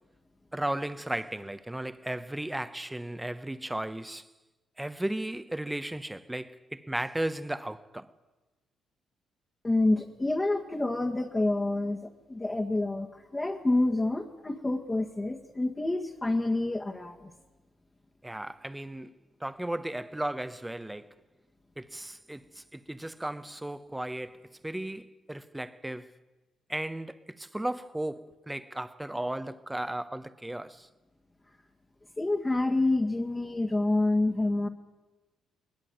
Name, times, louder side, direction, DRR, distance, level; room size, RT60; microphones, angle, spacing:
voice 1, 0.5-4.3 4.8-8.1 18.2-19.1 19.4-21.1 21.8-26.1 26.7-30.9, right 1 dB, 10° right, 1.0 m, -35 dB
voice 2, 9.6-17.3 32.2-34.7, left 2 dB, 20° left, 1.7 m, -28 dB
21.0 x 20.0 x 9.4 m
cardioid pair, 90°, 0 cm